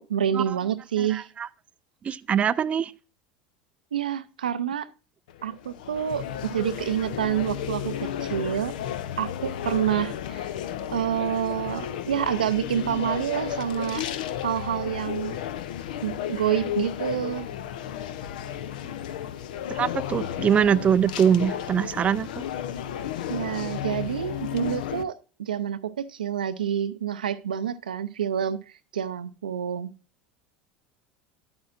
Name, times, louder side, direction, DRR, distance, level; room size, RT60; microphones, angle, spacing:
voice 1, 0.0-1.3 3.9-4.9 5.4-8.8 9.2-10.5 10.9-14.1 14.4-15.4 16.0-17.5 23.3-28.6 28.9-29.9, right 9 dB, 85° right, 0.5 m, -28 dB
voice 2, 1.0-1.5 2.0-2.9 19.7-22.4, right 8 dB, 30° right, 0.3 m, -23 dB
sound 1, 5.3-25.0, left 10 dB, 75° left, 0.6 m, -33 dB
10.5 x 8.7 x 2.5 m
hypercardioid pair, 80°, 5 cm